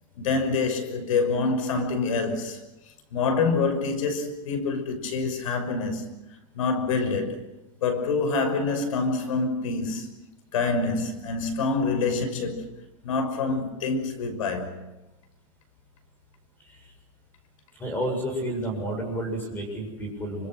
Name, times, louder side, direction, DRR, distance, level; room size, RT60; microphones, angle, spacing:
voice 1, 0.2-2.6 3.1-6.1 6.5-7.5 7.8-10.1 10.5-12.6 13.0-14.8, left 4 dB, 75° left, 6.1 m, -26 dB
voice 2, 17.7-20.5, right 1 dB, 10° left, 7.4 m, -31 dB
28.0 x 25.5 x 6.4 m
supercardioid pair, 170°, 17 cm